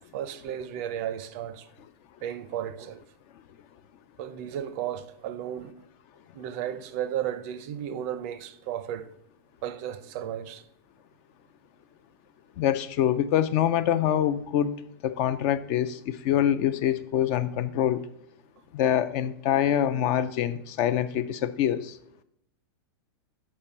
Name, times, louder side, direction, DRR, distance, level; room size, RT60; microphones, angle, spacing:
voice 1, 0.1-1.7 2.2-3.0 4.2-5.7 6.3-9.1 9.6-10.6, right 10 dB, 40° right, 0.5 m, -34 dB
voice 2, 12.6-18.0 18.7-21.9, left 10 dB, 35° left, 0.3 m, -25 dB
7.4 x 4.4 x 5.4 m
supercardioid pair, 160°, 13 cm